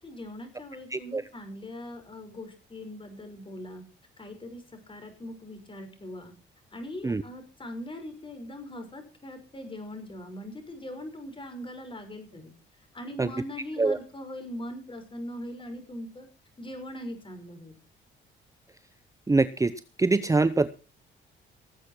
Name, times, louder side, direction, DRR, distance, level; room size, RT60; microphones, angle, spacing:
voice 1, 0.0-3.8 4.2-6.3 6.7-12.5 12.9-16.3 16.6-17.8, left 1 dB, 25° left, 5 dB, 6.3 m, -41 dB
voice 2, 0.9-1.2 7.0-7.2 13.2-13.3 13.8-14.0 19.3-19.7 20.0-20.7, right 3 dB, 15° right, 14 dB, 0.8 m, -23 dB
18.5 x 8.3 x 6.0 m, 0.35 s
cardioid pair, 90°, 20 cm